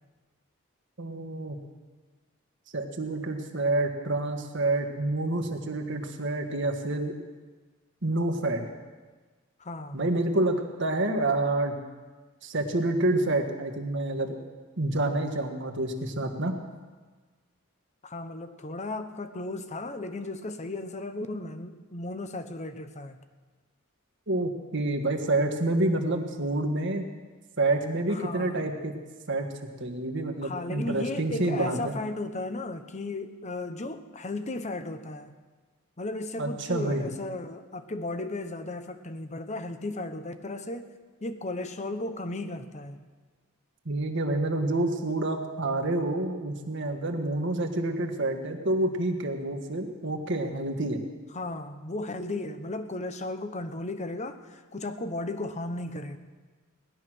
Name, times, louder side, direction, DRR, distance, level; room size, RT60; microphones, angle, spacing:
voice 1, 1.0-1.6 2.7-7.2 8.0-8.6 9.9-11.7 12.4-14.4 14.8-16.5 24.3-27.1 27.6-28.9 29.3-29.5 29.8-31.9 36.4-37.0 43.9-51.0, right 2 dB, 60° right, 4 dB, 1.6 m, -28 dB
voice 2, 9.6-10.0 18.0-23.2 28.1-28.7 30.4-35.3 36.0-40.9 41.2-43.0 51.3-56.2, left 2 dB, 35° left, 9 dB, 0.9 m, -35 dB
18.0 x 11.5 x 6.3 m, 1.4 s
head